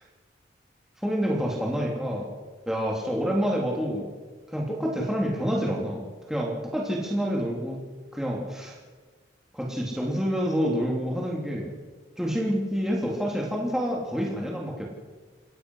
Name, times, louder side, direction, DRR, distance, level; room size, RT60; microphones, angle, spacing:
voice 1, 1.0-2.3 2.7-4.1 4.5-7.8 8.1-8.8 9.5-11.7 12.2-14.9, equal, 5° right, -2 dB, 3.4 m, -28 dB
28.5 x 16.0 x 6.4 m, 1.4 s
head